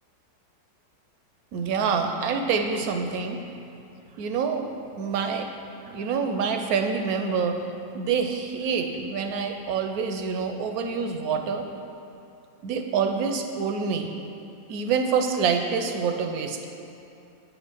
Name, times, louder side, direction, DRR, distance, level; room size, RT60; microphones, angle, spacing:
voice 1, 1.5-3.4 4.2-4.7 5.0-5.5 5.9-7.6 7.9-11.7 12.6-14.1 14.7-16.7, right 5 dB, 70° right, 5 dB, 0.9 m, -26 dB
8.8 x 5.4 x 5.9 m, 2.7 s
omnidirectional pair, 1.9 m